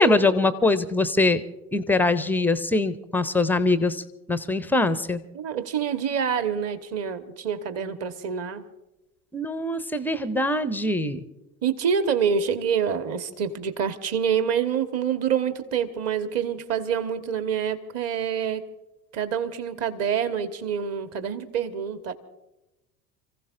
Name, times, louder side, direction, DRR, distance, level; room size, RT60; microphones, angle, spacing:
voice 1, 0.0-1.4 1.7-4.0 4.3-5.2 9.3-11.2, left 2 dB, 5° left, 13 dB, 0.4 m, -22 dB
voice 2, 5.3-8.6 11.6-18.6 19.1-22.1, right 7 dB, 35° right, 10 dB, 1.2 m, -26 dB
29.5 x 15.5 x 2.5 m, 0.97 s
figure-of-eight pair, 80°, 44 cm